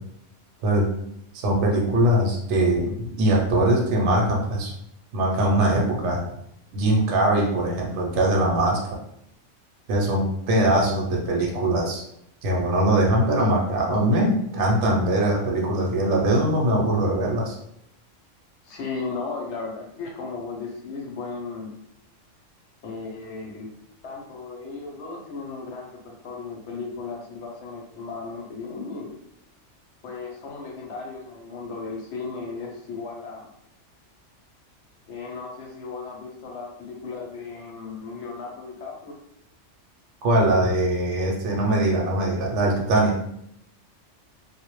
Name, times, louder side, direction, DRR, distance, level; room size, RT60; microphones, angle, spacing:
voice 1, 1.4-4.7 5.1-6.2 6.7-8.8 9.9-12.0 12.4-17.5 40.2-43.2, right 1 dB, 70° right, -2 dB, 0.8 m, -21 dB
voice 2, 18.6-21.7 22.8-23.7 24.0-29.1 30.0-33.5 35.1-39.1, left 4 dB, 70° left, -1 dB, 0.8 m, -35 dB
2.1 x 2.0 x 2.9 m, 0.77 s
omnidirectional pair, 1.3 m